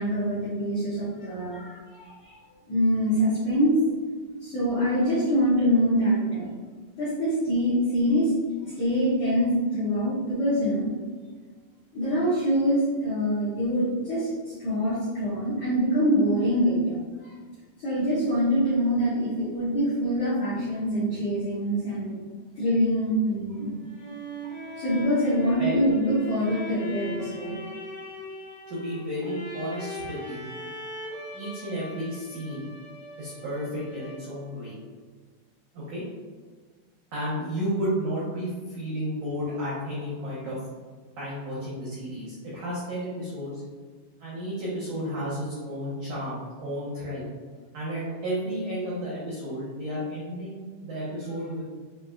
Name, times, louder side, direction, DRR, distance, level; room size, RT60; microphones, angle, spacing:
voice 1, 0.0-2.4 2.7-3.8 4.4-6.5 7.0-8.3 8.6-10.9 11.9-17.0 17.2-17.3 17.8-22.1 22.5-23.7 24.8-27.5, equal, 80° left, -10 dB, 1.6 m, -25 dB
sound 1, 23.6-34.5, equal, 60° left, 2.2 m, -40 dB
voice 2, 28.7-30.5 31.3-32.7 33.2-34.8 35.7-36.0 37.1-40.6 41.2-43.6 44.2-47.3 47.7-51.6, equal, 85° right, -8 dB, 1.7 m, -32 dB
6.9 x 2.9 x 2.3 m, 1.5 s
omnidirectional pair, 5.1 m